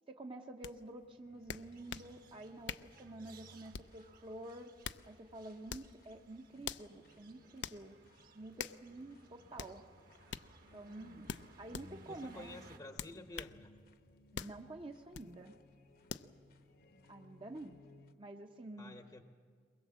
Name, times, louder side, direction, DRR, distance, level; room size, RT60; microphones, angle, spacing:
voice 1, 0.1-4.7 5.0-8.0 8.3-9.8 10.7-11.3 11.6-12.6 14.3-15.5 17.1-17.8 18.2-19.0, right 2 dB, 30° right, 3 dB, 0.8 m, -49 dB
sound 1, 0.6-0.7 1.5-2.1 2.7-2.9 3.7-4.0 4.6-5.0 5.7-5.9 6.6-6.9 7.6-7.8 8.6-8.8 9.6-9.7 10.3-10.5 11.3-11.9 13.0-13.6 14.3-14.6 15.1-15.3 16.1-16.3, left 7 dB, 80° left, 0.5 m, -43 dB
sound 2, 1.0-18.1, left 2 dB, 55° left, 0.9 m, -63 dB
sound 3, 1.6-12.8, right 3 dB, 55° right, 1.5 m, -63 dB
voice 2, 12.1-13.7 18.8-19.2, left 2 dB, 20° left, 6 dB, 0.8 m, -50 dB
22.5 x 20.5 x 7.5 m, 2.1 s
head